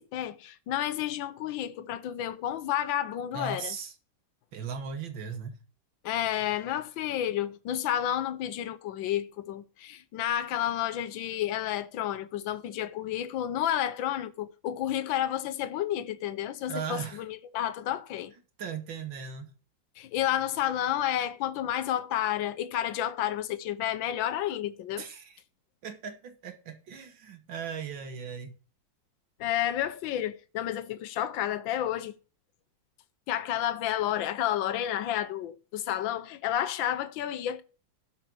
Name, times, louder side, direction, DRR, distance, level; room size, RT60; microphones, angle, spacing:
voice 1, 0.1-3.7 6.0-18.3 20.0-25.1 29.4-32.1 33.3-37.6, left 11 dB, 80° left, 1.5 m, -31 dB
voice 2, 3.3-3.9 4.5-5.6 16.7-17.2 18.6-19.5 25.0-25.4 25.8-28.5, right 6 dB, 80° right, 2.2 m, -38 dB
12.0 x 5.6 x 6.1 m
omnidirectional pair, 2.1 m